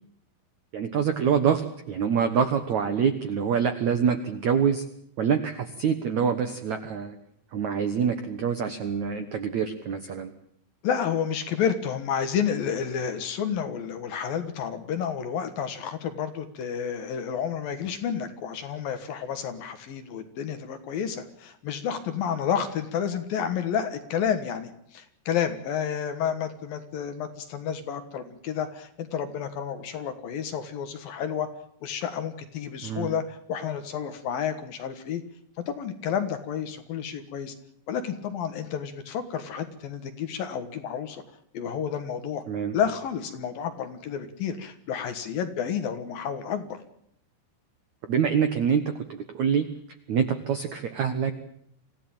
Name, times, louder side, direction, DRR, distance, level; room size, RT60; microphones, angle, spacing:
voice 1, 0.7-4.8 5.2-7.2 7.5-10.3 32.8-33.1 42.5-42.7 48.1-49.7 50.1-51.3, right 7 dB, 70° right, 9 dB, 1.8 m, -25 dB
voice 2, 10.8-31.5 31.8-35.2 35.6-37.5 37.9-41.2 41.5-42.4 42.7-46.8, left 8 dB, 60° left, 9 dB, 2.8 m, -30 dB
25.5 x 16.0 x 8.8 m, 0.71 s
omnidirectional pair, 5.3 m